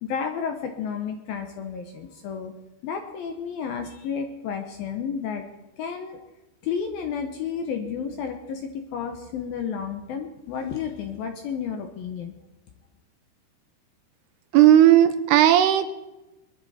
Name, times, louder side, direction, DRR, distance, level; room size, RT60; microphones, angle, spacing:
voice 1, 0.0-2.5 2.8-5.4 5.8-6.2 6.6-12.3, left 6 dB, 75° left, 5 dB, 2.3 m, -31 dB
voice 2, 14.5-15.9, right 12 dB, 85° right, 9 dB, 2.4 m, -15 dB
22.5 x 10.5 x 4.3 m, 1.0 s
omnidirectional pair, 5.4 m